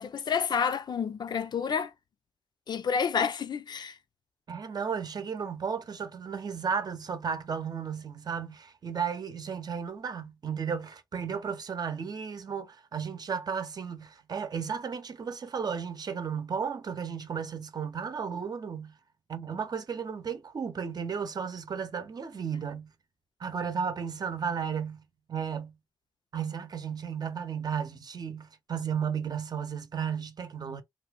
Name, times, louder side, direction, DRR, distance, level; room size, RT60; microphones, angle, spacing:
voice 1, 0.0-1.9 2.7-4.0, left 6 dB, 55° left, 0.5 m, -29 dB
voice 2, 4.5-18.9 19.3-22.9 23.4-25.0 25.3-25.7 26.3-30.8, right 6 dB, 50° right, 0.8 m, -34 dB
2.7 x 2.4 x 3.4 m
cardioid pair, 55°, 9 cm